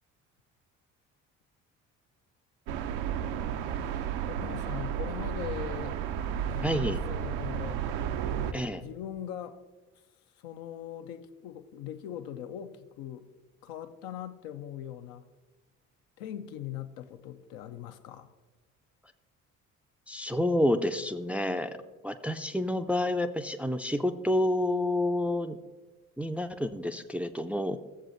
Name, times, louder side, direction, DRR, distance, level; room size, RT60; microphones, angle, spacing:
sound 1, 2.7-8.5, right 9 dB, 65° right, 0.6 m, -32 dB
voice 1, 4.3-6.0 6.4-7.8 8.3-9.6 10.4-13.3 13.6-15.2 16.2-18.3, left 10 dB, 70° left, 0.7 m, -41 dB
voice 2, 6.6-7.0 8.5-8.8 20.1-21.8 22.0-25.6 26.2-27.8, left 1 dB, 5° right, 0.4 m, -29 dB
14.0 x 7.4 x 2.6 m
hypercardioid pair, 50°, 39 cm